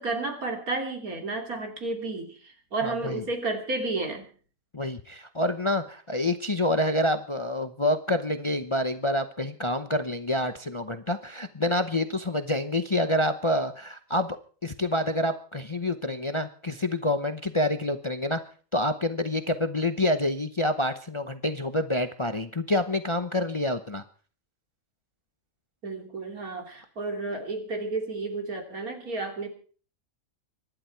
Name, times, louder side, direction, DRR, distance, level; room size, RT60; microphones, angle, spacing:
voice 1, 0.0-4.2 25.8-29.5, right 3 dB, 80° right, 4 dB, 3.4 m, -32 dB
voice 2, 2.8-3.2 4.7-14.4 14.6-18.4 18.7-24.0, left 1 dB, 25° left, 9 dB, 0.7 m, -27 dB
25.0 x 11.0 x 4.6 m, 0.43 s
omnidirectional pair, 1.5 m